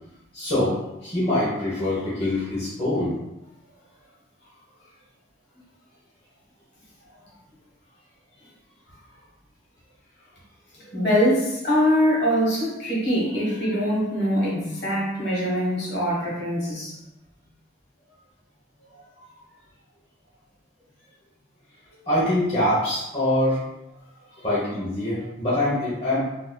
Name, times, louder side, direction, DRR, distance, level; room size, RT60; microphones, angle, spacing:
voice 1, 0.3-3.2 10.8-10.9 22.1-23.6 24.4-26.2, left 1 dB, 30° left, -10 dB, 0.9 m, -24 dB
voice 2, 10.9-16.9, equal, 60° left, -6 dB, 1.3 m, -23 dB
3.9 x 2.5 x 2.2 m, 0.91 s
head